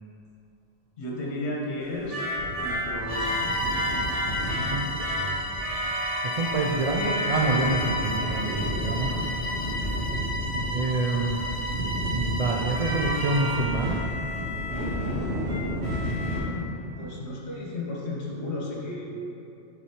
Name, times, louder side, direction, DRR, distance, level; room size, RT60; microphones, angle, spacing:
voice 1, 1.0-2.2 2.6-3.6 8.4-9.4 9.7-9.9 16.2-19.0, left 2 dB, 70° left, -3 dB, 1.3 m, -34 dB
sound 1, 1.8-16.4, equal, 85° right, 1.6 m, -30 dB
Bowed string instrument, 3.0-13.6, equal, 85° left, 1.1 m, -33 dB
voice 2, 4.7-5.4 5.7-5.9 6.2-9.1 10.7-11.5 12.1-14.0, right 3 dB, 70° right, -1 dB, 0.3 m, -27 dB
8.4 x 4.1 x 2.9 m, 2.8 s
omnidirectional pair, 1.2 m